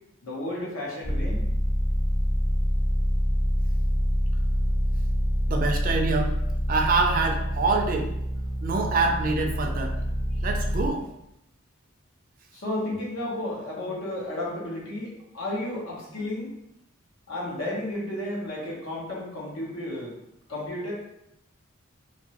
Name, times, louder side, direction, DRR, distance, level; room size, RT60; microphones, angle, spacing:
voice 1, 0.2-1.4 12.5-16.5 17.3-20.1 20.5-20.9, left 1 dB, 85° left, -4 dB, 1.0 m, -32 dB
sound 1, 1.0-10.9, equal, 20° left, 0.3 m, -26 dB
voice 2, 5.5-6.4 6.7-8.1 8.6-10.0 10.4-11.1, right 3 dB, 45° right, 3 dB, 0.4 m, -25 dB
2.9 x 2.5 x 2.9 m, 0.82 s
head